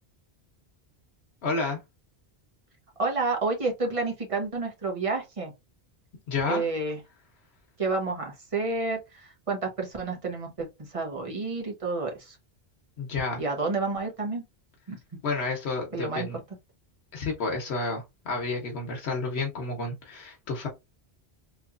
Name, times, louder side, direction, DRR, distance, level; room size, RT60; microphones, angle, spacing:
voice 1, 1.4-1.8 6.3-6.6 13.0-13.4 15.2-16.4 17.1-20.7, left 3 dB, 85° left, 1.1 m, -30 dB
voice 2, 3.0-5.5 6.5-7.0 7.8-12.4 13.4-14.4 14.9-15.0 15.9-16.3, right 3 dB, 35° right, 1.0 m, -30 dB
3.1 x 3.0 x 2.4 m
omnidirectional pair, 1.1 m